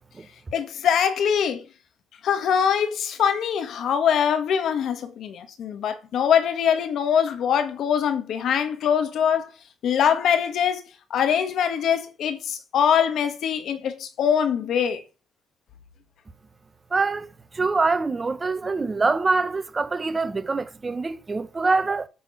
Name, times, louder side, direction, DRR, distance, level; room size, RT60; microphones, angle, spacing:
voice 1, 0.5-1.6 2.2-9.5 9.8-10.8 11.1-15.0, left 8 dB, 70° left, 1.5 m, -23 dB
voice 2, 16.9-22.1, right 3 dB, 30° right, 0.9 m, -24 dB
8.7 x 3.8 x 6.5 m
cardioid pair, 90°, 0 cm